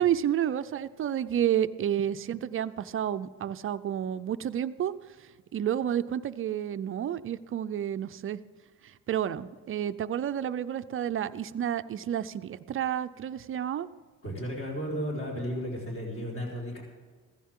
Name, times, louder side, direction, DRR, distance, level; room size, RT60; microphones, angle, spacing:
voice 1, 0.0-4.9 5.5-8.4 9.1-13.9, right 10 dB, 40° right, 11 dB, 0.5 m, -30 dB
voice 2, 14.2-16.8, equal, 40° left, -3 dB, 4.7 m, -34 dB
16.0 x 15.0 x 3.7 m, 1.5 s
cardioid pair, 145°, 35 cm